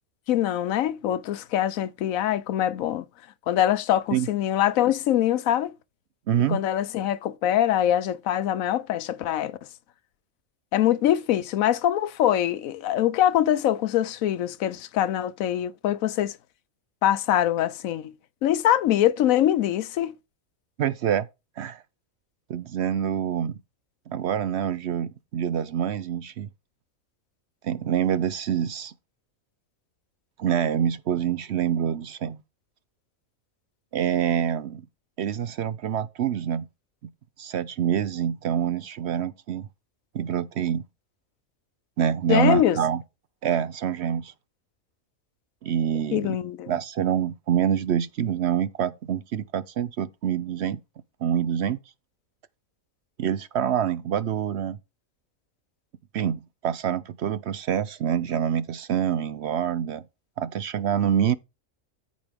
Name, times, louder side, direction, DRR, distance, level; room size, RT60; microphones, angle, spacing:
voice 1, 0.3-3.1 3.5-5.7 6.5-9.6 10.7-16.4 17.0-18.1 18.4-20.1 42.3-42.8 46.1-46.7, left 11 dB, 80° left, 1.0 m, -23 dB
voice 2, 6.3-6.6 20.8-21.3 21.6-21.8 22.5-23.5 24.1-26.5 27.6-28.9 30.4-32.4 33.9-34.8 35.2-36.7 37.4-39.7 40.1-40.8 42.0-43.0 43.4-44.3 45.6-46.4 46.7-50.8 51.2-51.8 53.2-54.8 56.1-60.0 60.4-61.4, right 9 dB, 60° right, 0.8 m, -26 dB
13.5 x 5.2 x 3.5 m
omnidirectional pair, 1.4 m